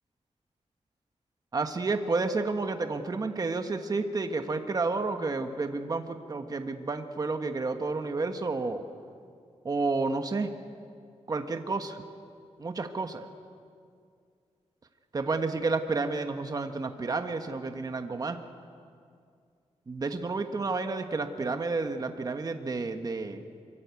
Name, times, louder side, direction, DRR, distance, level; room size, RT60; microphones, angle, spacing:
voice 1, 1.5-8.8 9.6-10.5 11.3-12.0 12.6-13.2 15.1-18.4 19.9-23.5, right 3 dB, 35° right, 6 dB, 1.4 m, -30 dB
25.5 x 23.5 x 8.4 m, 2.3 s
wide cardioid pair, 150°, 12 cm